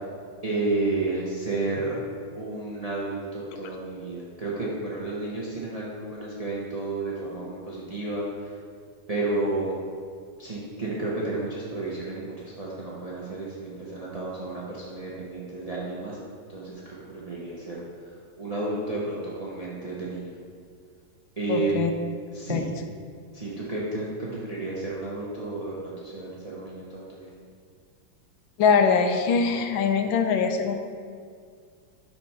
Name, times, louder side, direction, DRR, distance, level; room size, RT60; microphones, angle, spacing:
voice 1, 0.4-1.9 2.3-8.5 9.1-9.8 10.4-16.2 16.5-17.8 18.4-20.4 21.4-21.7 22.3-22.7 23.3-27.3, right 2 dB, 70° right, -6 dB, 0.3 m, -31 dB
voice 2, 21.5-21.9 22.5-22.6 28.6-30.7, left 5 dB, 80° left, 6 dB, 1.4 m, -22 dB
5.7 x 4.5 x 5.5 m, 2.1 s
omnidirectional pair, 2.1 m